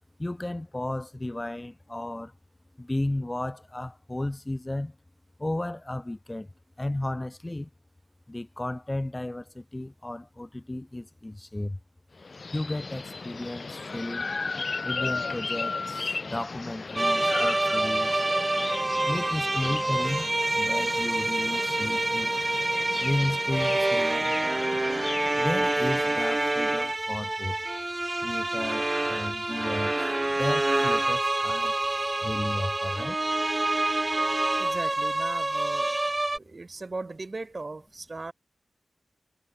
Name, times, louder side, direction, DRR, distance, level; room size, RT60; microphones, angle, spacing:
voice 1, 0.2-2.3 2.8-5.0 5.4-6.5 6.8-7.7 8.3-11.8 12.5-14.3 14.8-18.2 19.1-20.3 20.6-22.3 23.0-24.4 25.4-27.6 28.2-31.7 32.2-33.2, left 1 dB, 20° left, 1.2 m, -33 dB
sound 1, 12.2-26.2, left 4 dB, 60° left, 0.5 m, -36 dB
sound 2, 17.0-36.4, right 2 dB, 30° right, 0.8 m, -27 dB
voice 2, 34.6-36.0 36.3-38.3, right 3 dB, 45° right, 1.8 m, -37 dB
wide cardioid pair, 65°, 0 cm